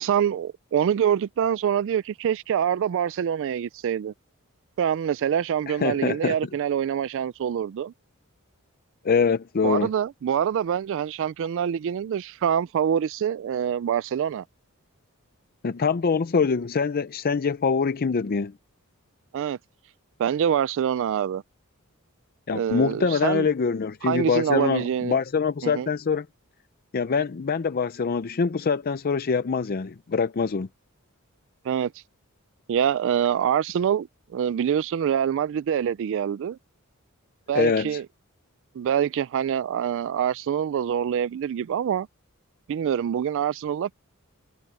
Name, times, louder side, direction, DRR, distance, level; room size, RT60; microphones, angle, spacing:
voice 1, 0.0-4.1 4.8-7.9 9.6-14.4 19.3-19.6 20.2-21.4 22.5-23.5 24.0-25.2 25.6-25.9 31.6-31.9 32.7-36.6 37.5-38.1 38.8-42.1 42.7-43.9, right 8 dB, 60° right, 0.3 m, -25 dB
voice 2, 5.7-6.3 9.0-9.9 15.6-18.5 22.5-26.3 26.9-30.7 37.5-38.0, left 5 dB, 45° left, 0.5 m, -24 dB
head